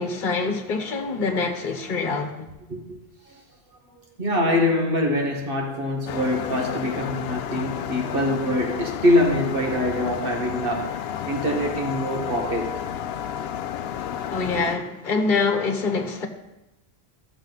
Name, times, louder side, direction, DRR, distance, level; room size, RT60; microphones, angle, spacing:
voice 1, 0.0-2.5 14.3-16.3, left 4 dB, 55° left, 1.3 m, -25 dB
voice 2, 4.2-12.8, left 1 dB, 60° right, 1.9 m, -24 dB
sound 1, 6.1-14.8, left 9 dB, 80° left, 0.8 m, -32 dB
14.0 x 7.0 x 4.0 m
omnidirectional pair, 1.0 m